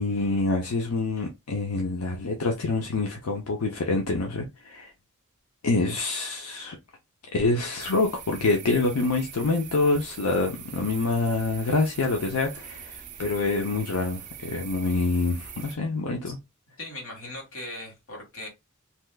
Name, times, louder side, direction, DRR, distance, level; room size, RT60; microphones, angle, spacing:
voice 1, 0.0-4.9 5.6-6.8 7.3-16.4, left 3 dB, 90° left, 0.7 m, -26 dB
sound 1, 7.8-15.8, right 8 dB, 35° right, 0.5 m, -43 dB
voice 2, 16.8-18.5, left 1 dB, 60° left, 1.6 m, -39 dB
3.3 x 2.8 x 2.2 m
head